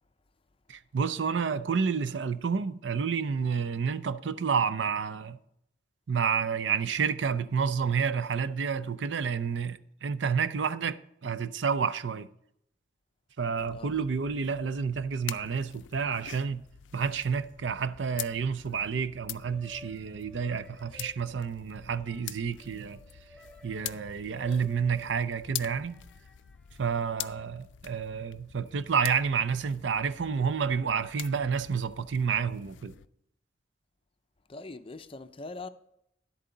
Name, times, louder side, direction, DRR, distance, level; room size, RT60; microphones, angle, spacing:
voice 1, 0.7-5.4 6.1-12.3 13.4-16.6 16.9-23.0 23.6-26.0 26.8-32.9, right 6 dB, 85° right, 0.5 m, -30 dB
sound 1, 13.6-33.1, left 13 dB, 85° left, 0.4 m, -45 dB
sound 2, 19.2-27.3, equal, 5° left, 1.0 m, -55 dB
voice 2, 34.5-35.7, left 3 dB, 30° left, 0.5 m, -42 dB
10.5 x 8.3 x 3.9 m
head